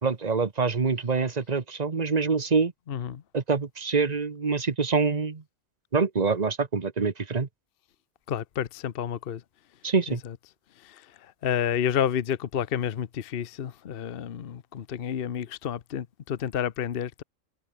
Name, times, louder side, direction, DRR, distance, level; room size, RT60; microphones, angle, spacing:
voice 1, 0.0-2.7 3.3-5.4 5.9-7.5 9.8-10.2, right 4 dB, 35° right, 1.3 m, -25 dB
voice 2, 2.9-3.2 8.3-9.4 10.1-10.4 10.8-17.2, left 9 dB, 50° left, 0.9 m, -30 dB
omnidirectional pair, 1.3 m